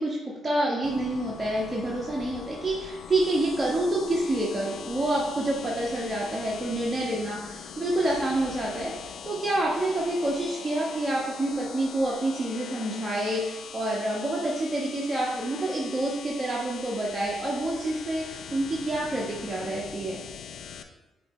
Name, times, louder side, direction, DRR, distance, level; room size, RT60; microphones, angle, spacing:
voice 1, 0.0-20.2, right 1 dB, 20° right, -5 dB, 1.2 m, -28 dB
sound 1, 0.8-20.8, left 7 dB, 75° left, 0.5 m, -42 dB
8.1 x 3.0 x 4.2 m, 1.1 s
cardioid pair, 90°, 0 cm